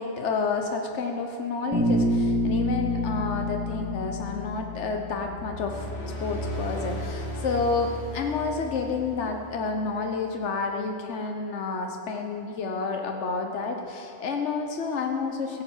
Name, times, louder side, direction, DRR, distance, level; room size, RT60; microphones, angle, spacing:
voice 1, 0.0-5.9 6.2-15.6, left 4 dB, 80° left, 3 dB, 1.3 m, -30 dB
Bass guitar, 1.7-5.7, left 1 dB, 10° right, 3.9 m, -27 dB
sound 1, 5.1-9.8, equal, 65° left, 1.9 m, -36 dB
16.0 x 8.5 x 7.3 m, 2.7 s
omnidirectional pair, 1.2 m